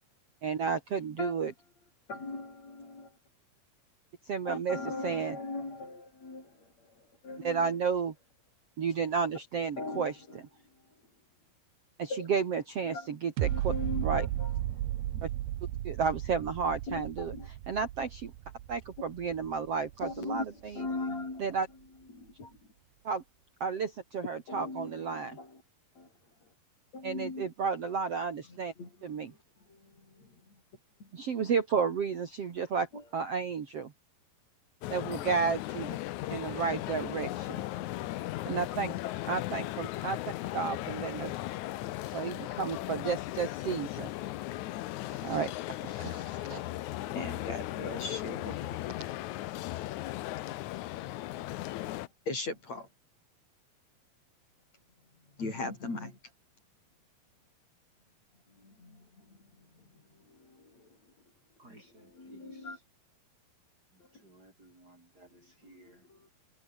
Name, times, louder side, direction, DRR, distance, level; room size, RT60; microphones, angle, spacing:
voice 1, 0.4-1.5 4.3-4.8 5.0-5.4 7.4-8.1 8.8-10.1 12.0-13.7 14.0-14.2 15.8-17.3 17.7-18.3 18.7-20.4 21.4-21.7 23.0-23.2 23.6-25.4 27.0-28.7 29.0-29.3 31.1-33.9 34.9-36.0 36.3-37.6 38.5-38.9 39.3-40.2 40.5-41.3 42.0-44.1 45.1-46.7 49.0-49.1, right 5 dB, 45° right, 2.7 m, -32 dB
voice 2, 2.1-3.2 4.5-6.9 7.2-7.8 9.8-10.4 12.1-12.2 12.8-13.1 13.4-15.2 16.9-17.5 20.0-21.5 22.1-22.5 24.5-25.6 26.0-26.1 26.9-27.5 27.8-27.9 28.5-29.4 29.7-30.6 31.0-31.1 32.9-33.0 38.7-38.8 47.0-48.9 51.8-52.9 55.4-56.2 58.5-61.0 62.2-62.8 64.0-64.2 65.8-66.3, left 3 dB, 45° left, 8.9 m, -40 dB
sound 1, 13.4-20.4 20.9-21.0, right 13 dB, 75° right, 3.1 m, -35 dB
sound 2, 34.8-52.1, left 16 dB, 80° left, 1.7 m, -37 dB
voice 3, 61.6-62.8 63.9-66.1, right 2 dB, 25° right, 5.5 m, -58 dB
omnidirectional pair, 4.4 m